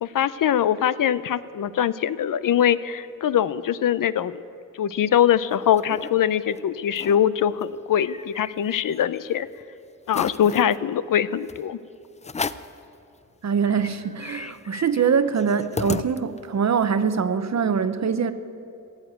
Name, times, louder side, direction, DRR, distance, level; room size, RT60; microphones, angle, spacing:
voice 1, 0.0-4.4 4.8-9.5 10.1-11.8, left 10 dB, 75° left, 16 dB, 0.5 m, -22 dB
sound 1, 5.3-6.1 6.5-6.6 6.9-7.2 7.6-9.2 9.6-9.7 10.1-10.8 11.5-11.6 12.2-12.8 13.3-13.4 13.6-16.6, left 4 dB, 20° left, 0.4 m, -34 dB
voice 2, 13.4-18.3, right 6 dB, 55° right, 12 dB, 0.8 m, -23 dB
15.5 x 8.1 x 9.2 m, 2.7 s
wide cardioid pair, 90°, 33 cm